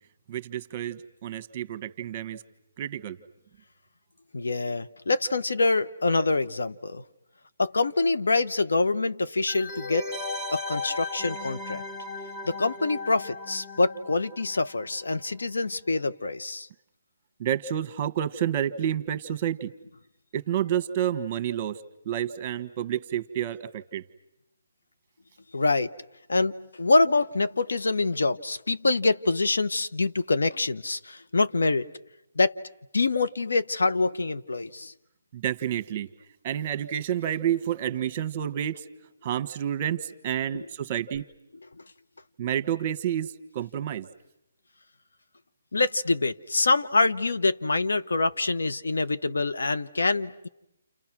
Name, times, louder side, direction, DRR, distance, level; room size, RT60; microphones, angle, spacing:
voice 1, 0.3-2.4 2.8-3.2 17.4-19.7 20.3-21.8 22.0-24.0 35.3-36.1 36.4-38.8 39.2-41.3 42.4-44.1, right 10 dB, 30° right, 12 dB, 1.3 m, -29 dB
voice 2, 4.3-7.0 7.6-10.1 10.5-11.8 12.4-16.7 25.5-25.9 26.3-31.9 32.3-32.6 32.9-34.9 40.5-40.7 45.7-50.5, left 3 dB, 80° left, 10 dB, 1.2 m, -25 dB
sound 1, 9.5-15.0 15.2-15.3, left 3 dB, 10° left, 1.3 m, -36 dB
29.5 x 29.0 x 6.1 m, 0.86 s
hypercardioid pair, 150°, 0 cm